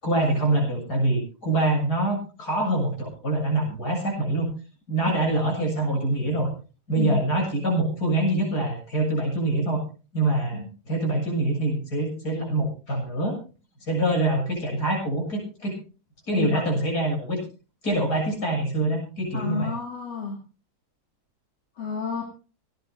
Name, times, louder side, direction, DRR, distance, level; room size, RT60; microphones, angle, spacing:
voice 1, 0.0-4.5 4.9-6.5 6.9-9.9 10.1-13.4 13.8-15.8 16.3-17.4 17.8-19.7, right 2 dB, 65° left, 1 dB, 7.5 m, -25 dB
voice 2, 19.3-20.4 21.8-22.2, left 5 dB, 90° left, -3 dB, 3.3 m, -30 dB
27.0 x 10.5 x 2.6 m, 0.35 s
omnidirectional pair, 1.8 m